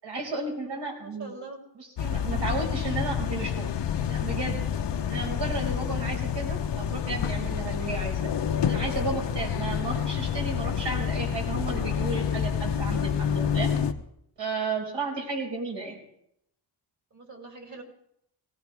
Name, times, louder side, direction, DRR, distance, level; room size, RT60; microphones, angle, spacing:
voice 1, 0.0-1.3 1.8-3.7 4.1-4.6 5.1-8.3 8.7-13.7 14.4-16.0, right 3 dB, 75° right, -1 dB, 5.5 m, -33 dB
voice 2, 0.9-1.6 17.1-17.8, right 3 dB, 45° right, 2 dB, 3.4 m, -43 dB
sound 1, 2.0-13.9, left 8 dB, 75° left, 1.1 m, -28 dB
18.5 x 18.0 x 3.5 m, 0.75 s
wide cardioid pair, 115°, 42 cm